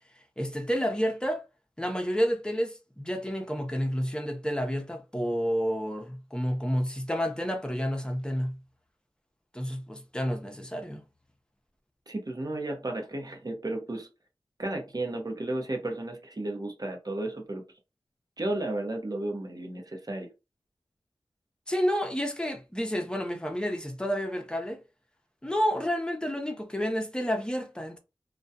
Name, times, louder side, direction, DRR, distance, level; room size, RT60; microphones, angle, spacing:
voice 1, 0.4-1.4 1.8-8.6 9.5-11.0 21.7-24.8 25.4-28.0, equal, 10° left, 0.7 m, -30 dB
voice 2, 12.1-14.1 14.6-17.6 18.4-20.3, right 2 dB, 40° right, 0.8 m, -33 dB
2.3 x 2.2 x 2.7 m
cardioid pair, 45°, 10 cm